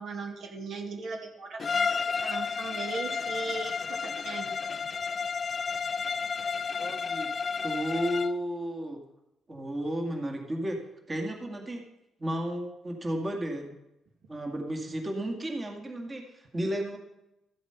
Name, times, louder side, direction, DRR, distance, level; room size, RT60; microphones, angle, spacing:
voice 1, 0.0-4.5, right 4 dB, 65° right, 2 dB, 2.2 m, -38 dB
Bowed string instrument, 1.6-8.4, left 5 dB, 40° left, 0.3 m, -31 dB
voice 2, 6.8-7.3 7.6-9.0 9.5-10.8 11.1-11.8 12.2-13.7 14.3-17.0, equal, 25° right, 2 dB, 2.1 m, -33 dB
13.5 x 7.8 x 5.8 m, 0.89 s
cardioid pair, 90°, 0 cm